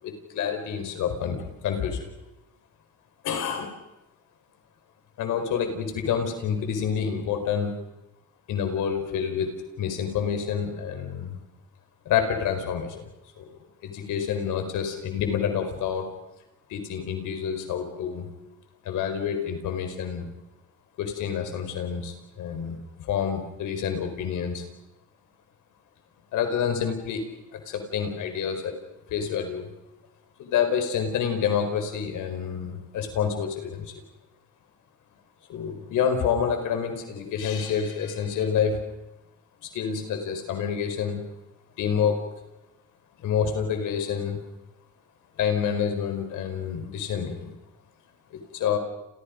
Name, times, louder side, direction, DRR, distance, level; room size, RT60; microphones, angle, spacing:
voice 1, 0.0-2.1 3.2-3.8 5.2-7.8 8.5-11.4 12.0-13.0 13.4-13.5 13.8-16.0 16.7-18.3 18.8-20.3 21.0-24.6 26.3-28.8 29.1-29.7 30.4-34.0 35.5-38.8 39.7-41.2 41.8-42.2 43.2-44.4 45.4-47.5 48.3-48.8, left 7 dB, 85° left, 6 dB, 4.9 m, -28 dB
29.5 x 29.5 x 5.3 m, 0.94 s
cardioid pair, 90°, 30 cm